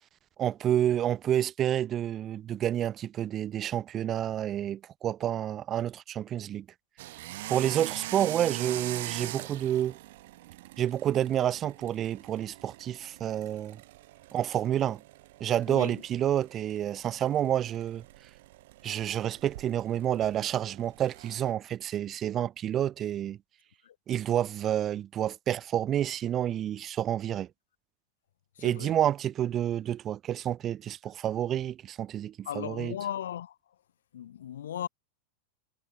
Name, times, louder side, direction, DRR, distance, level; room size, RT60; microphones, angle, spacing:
voice 1, 0.4-6.7 7.5-10.0 10.8-13.8 14.3-15.0 15.4-18.0 18.8-23.4 24.1-27.5 28.6-32.9, right 11 dB, 30° right, 0.8 m, -29 dB
sound 1, 7.0-21.5, right 17 dB, 55° right, 5.1 m, -43 dB
voice 2, 15.7-16.0 23.8-23.9 28.6-29.0 32.4-33.6 34.1-34.9, left 10 dB, 60° left, 2.8 m, -37 dB
figure-of-eight pair, 90°, 0 cm